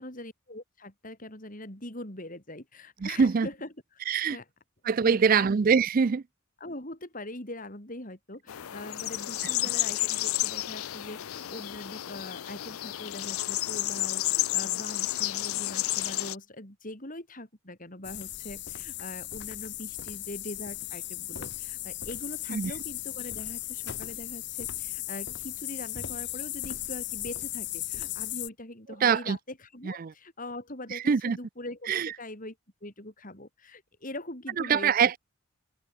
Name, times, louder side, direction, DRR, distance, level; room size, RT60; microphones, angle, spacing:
voice 1, 0.0-3.7 4.3-4.4 5.0-5.5 6.6-32.6 32.8-35.0, left 1 dB, 40° left, 5.2 m, -42 dB
voice 2, 3.0-3.5 4.1-4.4 4.8-6.2 22.5-22.7 29.0-29.4 29.8-30.1 30.9-31.4 31.9-32.1 34.6-35.2, right 6 dB, 40° right, 0.4 m, -24 dB
sound 1, 8.5-16.3, left 16 dB, 90° left, 0.5 m, -31 dB
sound 2, 18.0-28.5, left 14 dB, 55° left, 1.4 m, -37 dB
head